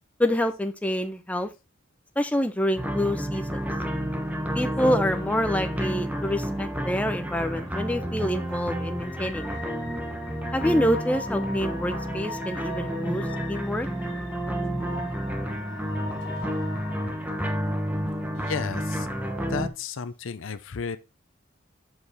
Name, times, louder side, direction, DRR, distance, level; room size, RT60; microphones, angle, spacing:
voice 1, 0.2-1.5 2.2-3.7 4.5-9.6 10.5-13.9, equal, 5° left, 0.6 m, -27 dB
sound 1, 2.8-19.7, equal, 10° right, 1.3 m, -30 dB
sound 2, 3.6-19.5, left 4 dB, 65° left, 1.1 m, -44 dB
voice 2, 18.3-19.1 19.5-21.0, left 5 dB, 80° left, 0.6 m, -33 dB
7.7 x 4.8 x 4.1 m
head